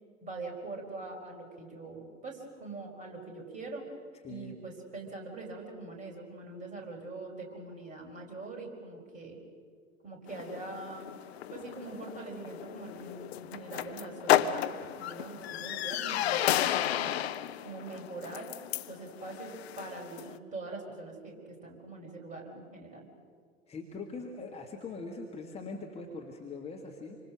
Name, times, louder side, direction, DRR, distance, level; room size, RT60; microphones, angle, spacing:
voice 1, 0.2-3.9 4.3-9.4 10.0-11.1 11.5-17.2 17.6-18.6 18.9-23.1, right 3 dB, 20° right, 1 dB, 4.8 m, -43 dB
voice 2, 4.2-4.6 23.7-27.2, left 3 dB, 15° left, 0 dB, 1.8 m, -42 dB
sound 1, 10.3-20.4, left 12 dB, 50° left, 0.8 m, -33 dB
27.0 x 25.0 x 6.3 m, 2.1 s
figure-of-eight pair, 95°, 41 cm